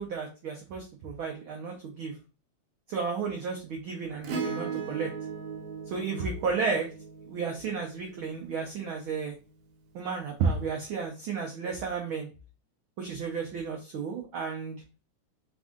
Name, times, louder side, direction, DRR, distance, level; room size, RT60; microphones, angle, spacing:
voice 1, 0.0-2.2 2.9-5.1 5.9-6.9 7.3-9.3 9.9-12.3 13.0-14.8, right 5 dB, 90° right, 0 dB, 1.1 m, -32 dB
Acoustic guitar / Strum, 4.2-8.8 10.7-10.8, right 5 dB, 70° right, 1.8 m, -38 dB
4.7 x 2.6 x 3.6 m, 0.33 s
omnidirectional pair, 3.3 m